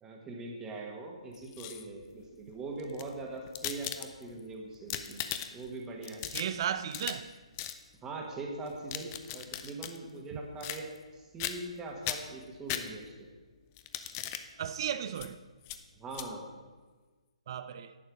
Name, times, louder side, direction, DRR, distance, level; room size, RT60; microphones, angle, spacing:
voice 1, 0.0-5.2 5.5-6.3 8.0-13.1 16.0-16.5, right 2 dB, 15° right, 1.7 m, -42 dB
sound 1, 1.3-2.0 2.8-4.4 4.7-5.7 6.0-7.3 7.6-7.8 8.7-10.0 10.6-11.1 11.4-11.8 12.0-13.3 13.8-14.5 15.1-15.3 15.6-15.8 16.1-16.3, left 11 dB, 25° left, 0.6 m, -38 dB
voice 2, 6.3-7.3 10.3-10.4 14.6-15.4 17.5-18.0, right 9 dB, 45° right, 0.6 m, -35 dB
11.0 x 8.4 x 4.9 m
figure-of-eight pair, 135°, 4 cm